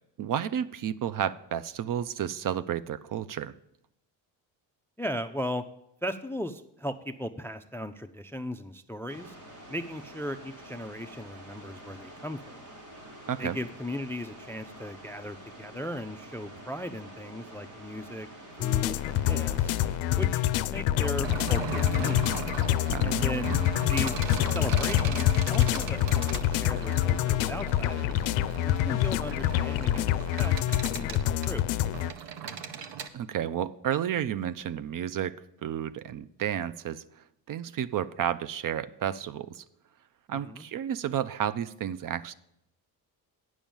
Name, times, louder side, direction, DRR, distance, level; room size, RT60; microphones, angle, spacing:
voice 1, 0.2-3.5 13.3-13.6 22.9-23.7 33.1-39.6 40.3-42.3, right 10 dB, 45° right, 15 dB, 0.5 m, -32 dB
voice 2, 5.0-5.7 6.0-9.4 9.7-12.7 13.4-18.3 18.6-19.7 20.2-20.4 20.7-22.2 23.0-23.6 23.9-28.2 28.6-30.5 30.9-31.8 40.3-40.6, equal, 5° left, 11 dB, 0.4 m, -37 dB
sound 1, 9.1-20.0, right 1 dB, 80° right, 3.8 m, -48 dB
sound 2, 18.6-32.1, left 13 dB, 75° left, 0.5 m, -26 dB
sound 3, 21.2-33.1, right 7 dB, 60° right, 0.9 m, -38 dB
8.8 x 6.3 x 7.1 m, 0.80 s
supercardioid pair, 70°, 47 cm